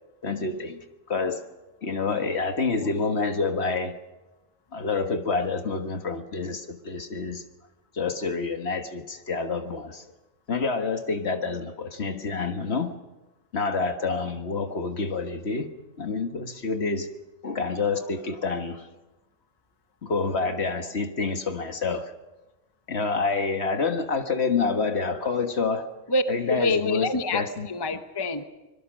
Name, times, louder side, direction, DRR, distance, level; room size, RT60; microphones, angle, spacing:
voice 1, 0.2-1.5 1.8-4.0 4.7-7.4 7.9-10.1 10.5-13.0 13.5-17.1 17.4-18.9 20.0-22.1 22.9-25.9 26.3-27.7, left 4 dB, 55° left, 1.7 m, -28 dB
voice 2, 26.5-28.4, left 2 dB, 20° left, 1.0 m, -26 dB
25.0 x 22.0 x 6.3 m
omnidirectional pair, 1.4 m